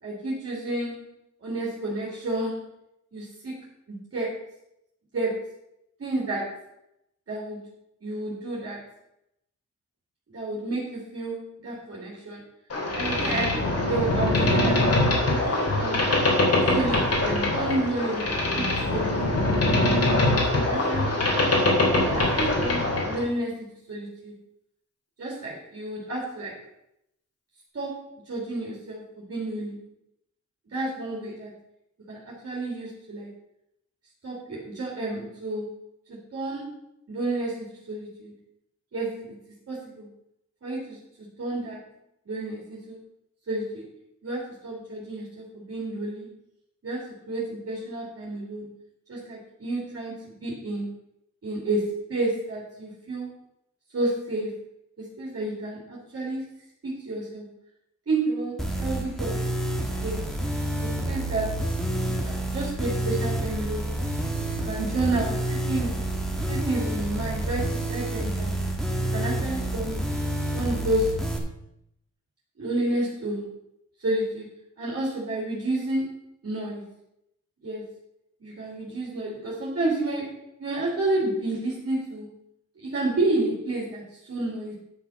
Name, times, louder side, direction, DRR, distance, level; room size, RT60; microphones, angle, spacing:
voice 1, 0.0-1.1 1.4-2.7 3.1-3.6 3.9-4.4 5.1-5.4 6.0-6.6 7.3-7.6 8.0-8.9 10.3-12.4 13.0-16.1 16.7-19.4 20.2-21.4 22.0-24.3 25.2-26.6 27.7-29.9 30.7-31.5 32.1-33.3 34.2-35.8 36.1-36.8 37.1-38.3 38.9-39.3 39.7-40.1 40.6-41.8 42.3-43.0 43.5-43.9 44.2-46.3 46.8-48.7 49.1-50.9 51.4-53.3 53.9-54.5 55.0-56.5 56.8-57.5 58.1-59.4 60.0-60.2 60.8-61.6 62.0-64.0 64.6-66.0 66.5-68.6 69.1-70.0 70.5-71.2 72.6-73.5 74.0-74.5 74.8-76.2 76.4-76.9 77.6-77.8 78.4-82.3 82.8-84.7, right 2 dB, 55° right, -4 dB, 3.0 m, -30 dB
Boat Water vehicle, 12.7-23.2, left 2 dB, 55° left, 3.2 m, -23 dB
sound 1, 58.6-71.4, right 1 dB, ahead, 1.8 m, -29 dB
11.0 x 5.8 x 5.8 m, 0.82 s
wide cardioid pair, 120°, 29 cm